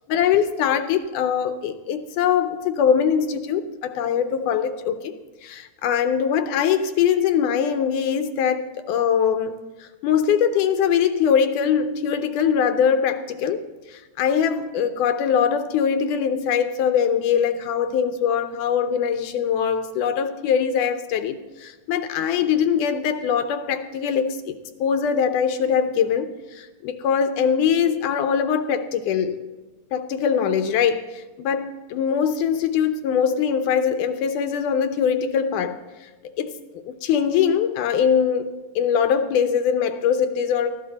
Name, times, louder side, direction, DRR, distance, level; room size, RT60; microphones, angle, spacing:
voice 1, 0.1-5.1 5.4-13.6 13.9-24.5 24.8-29.4 29.9-36.5 36.9-38.5 38.8-40.8, left 7 dB, 75° left, 9 dB, 2.1 m, -22 dB
17.5 x 15.0 x 4.1 m, 1.2 s
omnidirectional pair, 3.9 m